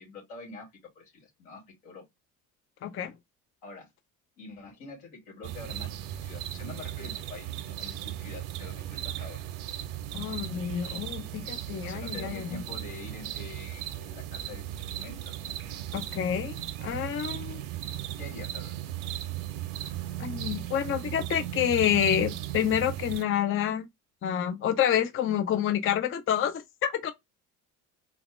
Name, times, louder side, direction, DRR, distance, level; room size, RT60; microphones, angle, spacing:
voice 1, 0.0-2.0 3.6-3.9 4.4-5.9 6.2-9.4 11.8-15.6 18.2-18.7, left 3 dB, 80° left, 2.3 m, -45 dB
voice 2, 2.8-3.1 10.1-12.6 15.9-17.6 20.2-23.9 24.2-27.1, left 9 dB, 30° left, 0.5 m, -28 dB
sound 1, 5.4-23.2, right 13 dB, 70° right, 0.8 m, -37 dB
4.1 x 2.1 x 3.1 m
hypercardioid pair, 60°, 45 cm